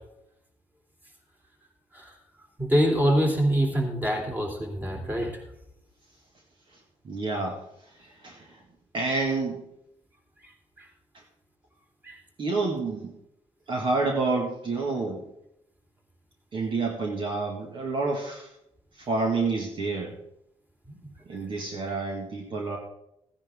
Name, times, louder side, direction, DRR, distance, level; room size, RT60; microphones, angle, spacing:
voice 1, 2.6-5.3 12.0-12.1, equal, 15° right, 1 dB, 3.2 m, -24 dB
voice 2, 7.0-7.6 8.2-8.6 8.9-9.6 12.4-13.1 13.7-15.2 16.5-18.5 19.0-20.1 21.3-22.8, right 3 dB, 50° right, 1 dB, 1.9 m, -28 dB
15.5 x 10.0 x 3.7 m, 0.78 s
cardioid pair, 105°, 11 cm